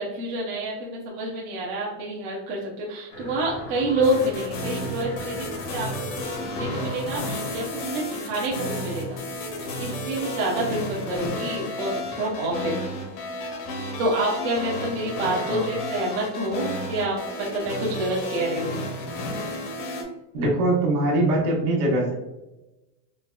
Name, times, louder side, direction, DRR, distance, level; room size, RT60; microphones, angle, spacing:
voice 1, 0.0-9.2 9.6-12.8 14.0-18.7, right 1 dB, 45° right, -5 dB, 0.7 m, -28 dB
sound 1, 3.1-13.0 13.3-13.4, left 2 dB, 25° left, 0.4 m, -41 dB
sound 2, 4.0-20.0, left 1 dB, 65° left, 0.9 m, -32 dB
voice 2, 15.4-15.9 20.3-22.1, right 1 dB, 65° right, -1 dB, 1.1 m, -23 dB
4.6 x 2.2 x 2.2 m, 1.0 s
supercardioid pair, 180°, 49 cm